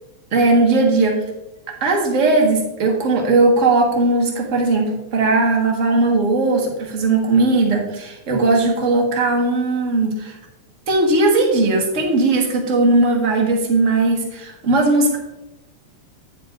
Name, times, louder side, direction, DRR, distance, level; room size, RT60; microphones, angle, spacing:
voice 1, 0.3-1.2 1.8-10.3 10.9-15.2, right 2 dB, 40° right, 0 dB, 1.2 m, -18 dB
9.8 x 9.4 x 2.5 m, 0.96 s
omnidirectional pair, 3.4 m